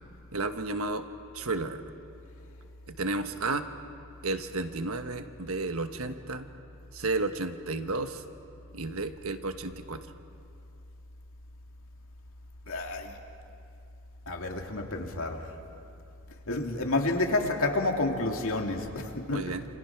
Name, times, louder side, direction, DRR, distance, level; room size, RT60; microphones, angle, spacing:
voice 1, 0.3-1.0 1.3-1.8 2.9-3.7 4.2-6.5 6.9-8.2 8.7-10.0 19.3-19.7, right 3 dB, 70° right, 8 dB, 1.4 m, -32 dB
voice 2, 12.7-13.1 14.3-15.5 16.5-19.4, left 2 dB, 65° left, 2 dB, 2.6 m, -29 dB
28.0 x 28.0 x 6.0 m, 2.6 s
head